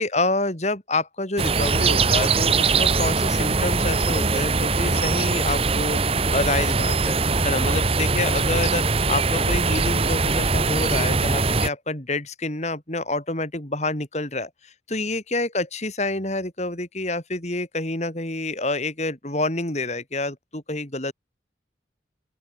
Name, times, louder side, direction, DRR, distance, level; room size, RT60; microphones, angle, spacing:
voice 1, 0.0-7.2 7.4-21.1, left 2 dB, 40° left, 3.8 m, -27 dB
sound 1, 1.4-11.7, right 4 dB, 30° right, 0.9 m, -22 dB
open air
head